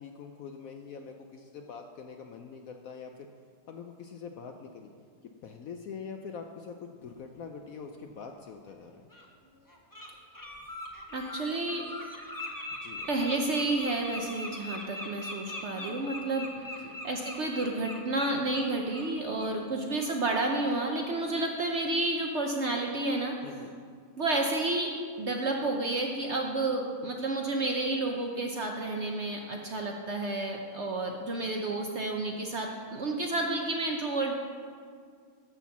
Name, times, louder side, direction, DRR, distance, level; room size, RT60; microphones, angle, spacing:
voice 1, 0.0-3.3 3.7-4.9 5.4-9.1 12.7-13.1 16.5-17.0 19.8-19.9 23.4-23.7, left 6 dB, 65° left, 4 dB, 0.9 m, -44 dB
Bird, 9.1-9.2 9.7-10.1 10.3-19.1 19.4-19.6 20.0-20.1, left 1 dB, 15° left, 0.8 m, -41 dB
voice 2, 11.1-11.8 13.1-23.4 24.2-34.3, right 2 dB, 55° right, 1 dB, 0.8 m, -31 dB
12.5 x 4.4 x 7.1 m, 2.1 s
omnidirectional pair, 1.9 m